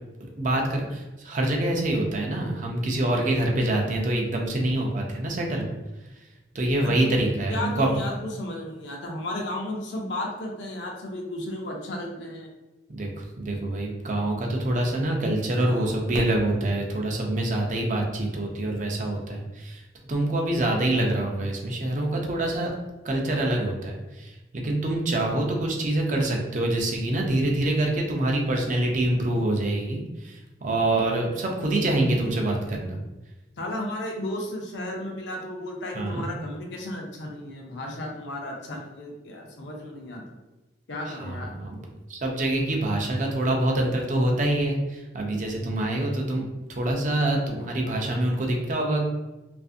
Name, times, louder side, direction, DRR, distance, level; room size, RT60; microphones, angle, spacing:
voice 1, 0.4-5.7 6.5-7.9 12.9-19.8 20.1-22.8 23.0-33.0 35.9-36.3 41.0-41.8 42.1-46.4 46.7-49.1, right 1 dB, 45° right, 0 dB, 0.5 m, -25 dB
voice 2, 6.8-7.1 7.5-12.5 33.6-40.2 40.9-41.5, left 1 dB, 80° left, 1 dB, 0.6 m, -34 dB
2.5 x 2.5 x 2.4 m, 1.1 s
head